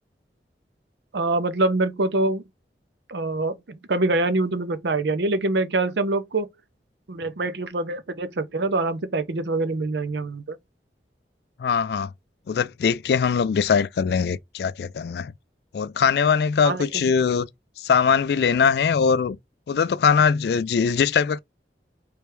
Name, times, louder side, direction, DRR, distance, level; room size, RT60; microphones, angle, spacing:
voice 1, 1.1-2.4 3.1-6.5 7.1-10.6 16.6-17.1, right 2 dB, 80° right, 0.6 m, -25 dB
voice 2, 11.6-12.1 12.5-15.3 15.7-17.5 17.8-19.4 19.7-21.4, left 6 dB, 65° left, 0.3 m, -21 dB
3.5 x 3.2 x 3.1 m
head